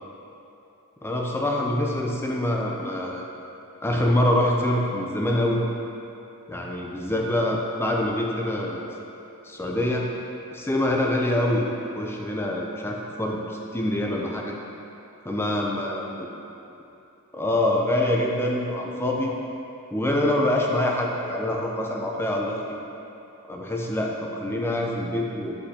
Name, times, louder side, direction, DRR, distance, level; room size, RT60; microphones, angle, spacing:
voice 1, 1.0-3.2 3.8-5.6 6.5-8.9 9.4-10.1 10.5-11.7 11.9-14.5 15.2-16.3 17.3-19.3 19.9-22.6 23.5-25.6, left 1 dB, 10° left, -1 dB, 0.5 m, -25 dB
8.2 x 5.4 x 2.9 m, 2.9 s
head